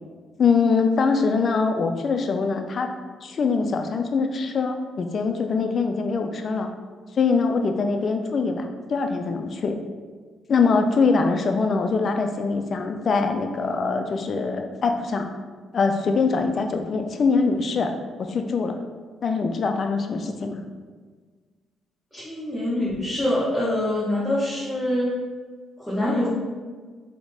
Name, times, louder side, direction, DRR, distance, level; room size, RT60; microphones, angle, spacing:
voice 1, 0.4-2.9 3.2-6.7 7.1-9.8 10.5-15.3 15.7-17.9 18.2-18.8 19.2-20.6, left 4 dB, 50° left, 5 dB, 0.4 m, -23 dB
voice 2, 22.1-25.1 25.8-26.3, left 1 dB, 5° left, -10 dB, 1.1 m, -25 dB
4.0 x 2.9 x 3.4 m, 1.5 s
cardioid pair, 90°, 0 cm